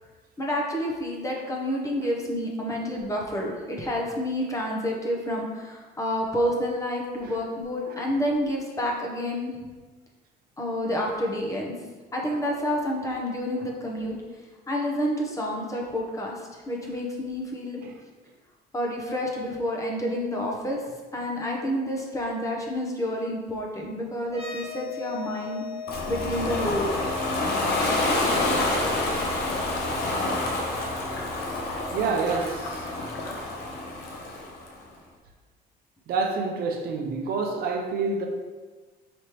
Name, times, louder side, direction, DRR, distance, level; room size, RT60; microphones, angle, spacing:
voice 1, 0.4-9.6 10.6-11.7 12.1-14.2 14.7-17.8 18.7-20.8 21.1-25.6 26.1-26.9, equal, 20° left, -1 dB, 0.8 m, -29 dB
sound 1, 24.3-31.8, left 6 dB, 35° right, 1.4 m, -40 dB
Ocean, 25.9-34.7, left 2 dB, 75° left, 0.8 m, -28 dB
voice 2, 31.9-33.2 36.1-38.3, right 4 dB, 65° right, 3 dB, 0.6 m, -29 dB
5.0 x 3.0 x 3.0 m, 1.3 s
cardioid pair, 110°, 17 cm